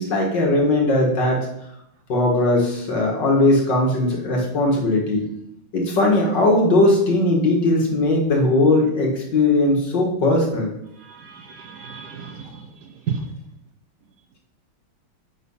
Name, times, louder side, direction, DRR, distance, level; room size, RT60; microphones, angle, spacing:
voice 1, 0.0-1.5 2.1-5.3 5.7-10.7, left 2 dB, 60° left, -1 dB, 2.5 m, -19 dB
voice 2, 11.1-12.7 13.1-13.3, right 6 dB, 65° right, 6 dB, 1.2 m, -32 dB
7.5 x 6.4 x 5.6 m, 0.79 s
omnidirectional pair, 2.1 m